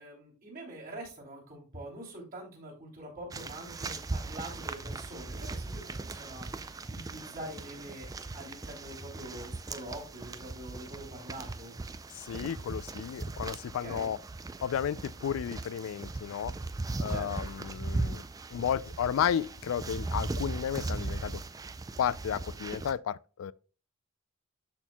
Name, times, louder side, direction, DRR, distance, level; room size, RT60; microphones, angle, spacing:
voice 1, 0.0-8.1 8.3-11.7 13.8-14.1 17.1-17.4, right 1 dB, 45° right, 3.0 m, -44 dB
sound 1, 3.3-22.9, right 3 dB, 15° right, 0.3 m, -38 dB
voice 2, 12.2-14.2 14.6-16.5 17.0-18.2 18.5-21.4 22.0-23.5, left 8 dB, 90° left, 0.3 m, -33 dB
13.0 x 4.5 x 2.2 m
head